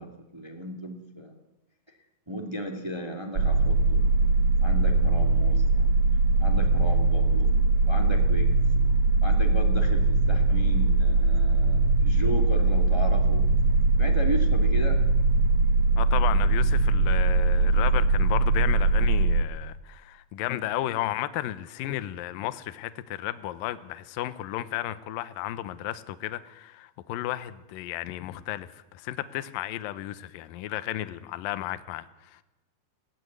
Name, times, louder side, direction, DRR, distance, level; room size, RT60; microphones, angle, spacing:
voice 1, 0.0-1.3 2.3-4.0 4.6-5.9 6.4-7.5 7.8-8.6 9.2-13.5 14.0-15.0, equal, 15° right, 0.8 m, -35 dB
sound 1, 3.3-19.4, right 3 dB, 80° right, 1.1 m, -21 dB
voice 2, 16.0-32.4, left 14 dB, 75° left, 2.2 m, -33 dB
20.5 x 17.0 x 9.5 m
omnidirectional pair, 5.0 m